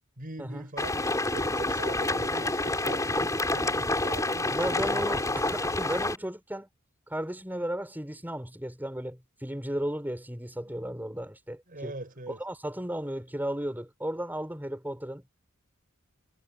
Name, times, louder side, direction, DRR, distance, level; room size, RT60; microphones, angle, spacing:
voice 1, 0.2-1.0 1.3-5.4 11.7-12.4, right 2 dB, 45° right, 7.5 m, -42 dB
sound 1, 0.8-6.2, left 2 dB, 15° left, 4.6 m, -28 dB
voice 2, 4.5-6.7 7.1-11.9 12.3-15.3, right 1 dB, 10° right, 6.6 m, -34 dB
head